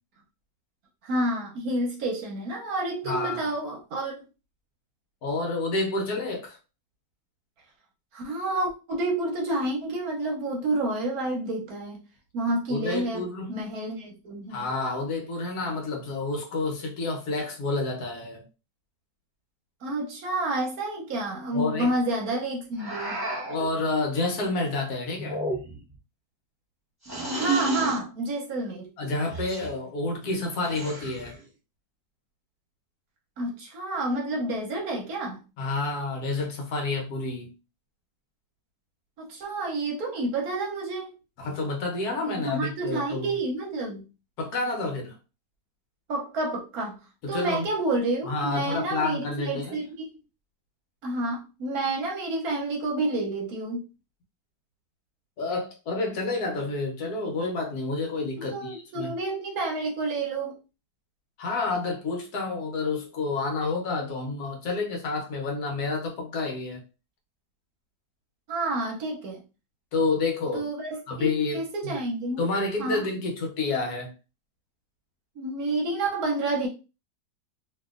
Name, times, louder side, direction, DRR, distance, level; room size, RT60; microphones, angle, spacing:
voice 1, 1.0-4.2 8.1-12.0 12.3-13.2 13.5-14.7 19.8-23.2 27.3-28.9 33.4-35.4 39.2-41.2 42.2-44.1 46.1-47.0 47.3-50.1 51.0-53.8 58.4-60.6 68.5-69.4 70.5-72.4 72.8-73.0 75.4-76.7, right 2 dB, 65° right, 1.1 m, -29 dB
voice 2, 3.0-3.5 5.2-6.6 12.7-13.6 14.5-18.4 21.5-21.9 23.5-25.4 29.0-31.3 35.6-37.5 41.4-43.3 44.4-45.1 47.2-47.7 48.2-49.8 55.4-59.1 61.4-66.8 69.9-70.7 71.1-72.0 72.4-74.1, left 3 dB, 65° left, 1.3 m, -29 dB
sound 1, 22.8-23.7 25.2-25.9 27.0-28.0 29.3-29.7 30.6-31.3, right 3 dB, 10° right, 1.3 m, -31 dB
2.9 x 2.6 x 2.4 m
omnidirectional pair, 1.9 m